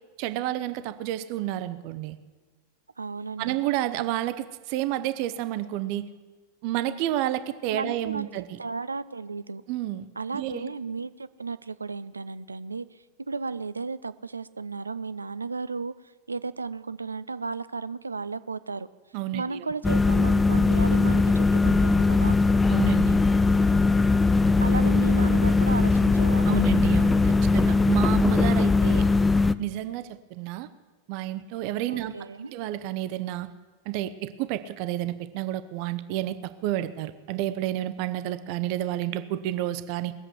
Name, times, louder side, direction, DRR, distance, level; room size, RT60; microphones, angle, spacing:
voice 1, 0.2-2.2 3.4-6.1 6.6-8.6 9.7-10.1 10.3-10.7 19.1-19.7 22.7-23.2 26.4-29.0 29.6-30.7 31.1-32.1 32.5-33.5 33.9-40.1, right 13 dB, 45° right, 12 dB, 0.8 m, -30 dB
voice 2, 3.0-3.6 7.7-8.3 8.6-9.6 10.2-15.9 16.3-18.9 19.3-22.4 24.6-26.6 31.9-32.5, right 4 dB, 80° right, 16 dB, 0.5 m, -34 dB
sound 1, 19.8-29.5, left 3 dB, 10° left, 0.4 m, -20 dB
20.0 x 7.5 x 8.0 m, 1.3 s
figure-of-eight pair, 90°, 0 cm